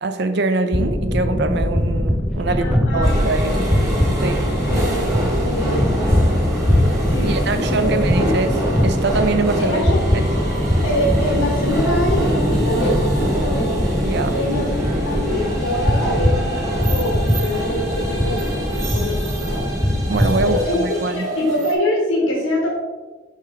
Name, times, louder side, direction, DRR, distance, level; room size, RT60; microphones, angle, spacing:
voice 1, 0.0-2.7 2.9-3.5 4.2-4.4 7.2-8.5 8.8-9.8 10.1-10.3 14.0-14.4 20.1-21.3, right 3 dB, 55° right, 9 dB, 0.5 m, -23 dB
sound 1, 0.7-20.6, equal, 5° left, 0.3 m, -21 dB
voice 2, 2.4-3.8 4.7-6.1 7.1-8.3 9.6-10.0 10.8-13.9 14.2-19.7 20.4-20.8 21.2-22.7, left 1 dB, 80° left, -2 dB, 1.1 m, -25 dB
sound 2, 3.0-21.7, right 1 dB, 15° right, 1.5 m, -26 dB
5.7 x 4.7 x 3.6 m, 1.3 s
head